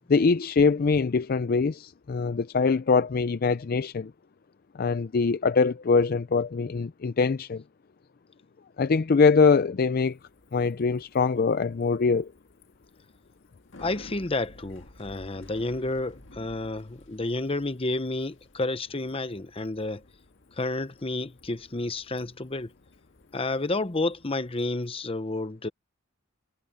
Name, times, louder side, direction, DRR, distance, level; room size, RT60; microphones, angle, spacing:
voice 1, 0.1-4.1 4.8-7.6 8.8-10.2 10.5-12.3, left 4 dB, 45° left, 0.4 m, -23 dB
Bicycle, 10.0-24.9, left 1 dB, 60° left, 1.9 m, -53 dB
voice 2, 13.8-20.0 20.5-22.7 23.3-25.7, left 2 dB, 25° left, 0.9 m, -30 dB
head